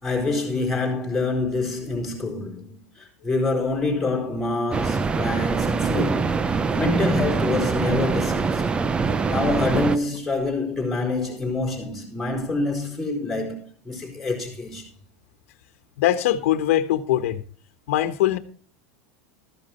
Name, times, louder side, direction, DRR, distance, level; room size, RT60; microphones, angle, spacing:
voice 1, 0.0-8.6 9.0-14.9, left 2 dB, 5° left, 4.7 m, -26 dB
sound 1, 4.7-10.0, right 4 dB, 15° right, 0.5 m, -24 dB
voice 2, 16.0-17.4 17.9-18.4, left 13 dB, 80° left, 1.3 m, -21 dB
14.0 x 11.0 x 4.4 m
supercardioid pair, 160°, 7 cm